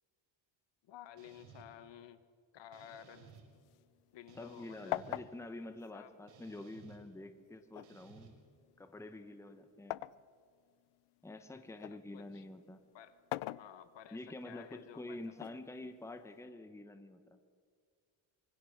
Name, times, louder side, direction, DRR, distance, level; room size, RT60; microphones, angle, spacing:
voice 1, 0.8-2.2 2.5-3.3 4.1-5.0 5.9-6.1 11.9-12.4 12.9-13.2 13.6-15.3, left 10 dB, 60° left, 12 dB, 1.3 m, -54 dB
sound 1, 1.2-1.7 2.7-3.4 4.3-5.2 6.3-7.0 7.8-8.3, right 7 dB, 80° right, 5.4 m, -58 dB
sound 2, 3.3-4.6 4.9-6.9 7.7-10.2 10.8-12.0 13.1-14.2 15.3-16.4, left 17 dB, 80° left, 0.7 m, -43 dB
voice 2, 4.4-8.3 8.8-10.0 11.2-12.8 14.1-17.4, left 2 dB, 5° left, 8 dB, 1.0 m, -47 dB
25.5 x 24.5 x 6.6 m, 2.1 s
cardioid pair, 150°, 49 cm